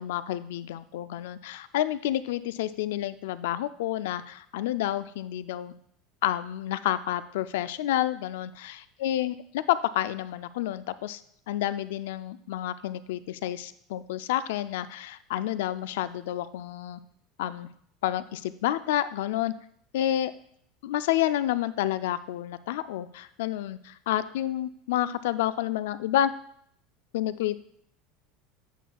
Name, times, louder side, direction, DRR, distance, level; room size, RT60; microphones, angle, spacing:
voice 1, 0.0-5.7 6.2-8.8 9.0-11.2 11.5-17.0 17.4-17.7 18.0-19.5 19.9-20.3 20.8-26.3 27.1-27.6, left 12 dB, 90° left, 14 dB, 0.3 m, -29 dB
8.1 x 5.9 x 2.3 m, 0.67 s
supercardioid pair, 170°, 0 cm